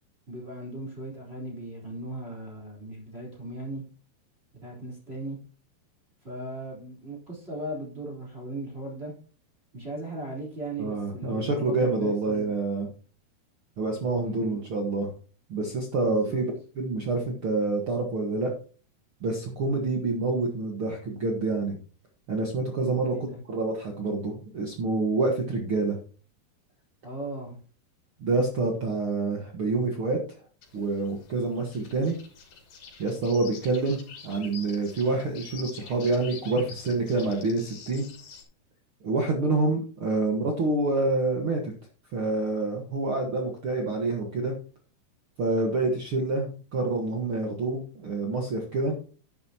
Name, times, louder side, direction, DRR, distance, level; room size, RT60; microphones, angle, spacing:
voice 1, 0.3-3.8 4.5-5.4 6.2-9.1 9.7-12.6 14.2-14.6 16.0-16.4 23.0-23.4 27.0-27.6, right 1 dB, 15° right, -2 dB, 3.6 m, -38 dB
voice 2, 10.8-12.9 13.8-15.1 15.5-16.5 16.8-18.5 19.2-21.8 22.3-23.1 23.5-26.0 28.2-30.2 30.7-32.1 33.0-38.1 39.0-41.7 42.1-44.5 45.4-48.9, right 3 dB, 70° right, 2 dB, 1.2 m, -27 dB
sound 1, 30.6-38.4, left 6 dB, 70° left, 4.7 m, -47 dB
10.5 x 10.5 x 2.9 m, 0.39 s
omnidirectional pair, 4.8 m